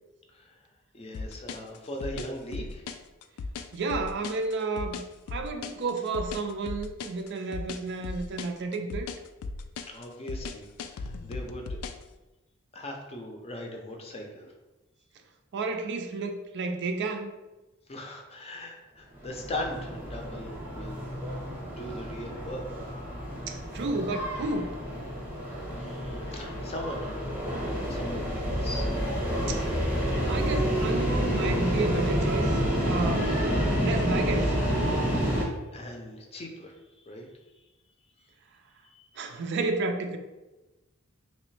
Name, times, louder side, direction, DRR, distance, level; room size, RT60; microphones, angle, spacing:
voice 1, 0.9-2.8 9.8-11.8 12.7-14.5 17.9-21.1 21.7-22.6 25.7-28.9 35.7-36.8 37.1-37.2 38.8-39.0, left 1 dB, 30° left, 2 dB, 0.5 m, -39 dB
sound 1, 1.1-12.1, left 4 dB, 85° left, 0.3 m, -37 dB
voice 2, 3.7-5.0 5.3-9.1 15.5-17.4 23.5-24.7 29.5-33.3 33.8-35.3 39.2-40.2, right 3 dB, 55° right, 5 dB, 0.4 m, -31 dB
sound 2, 19.2-35.4, equal, 10° right, 0.8 m, -29 dB
3.2 x 3.0 x 3.2 m, 1.1 s
head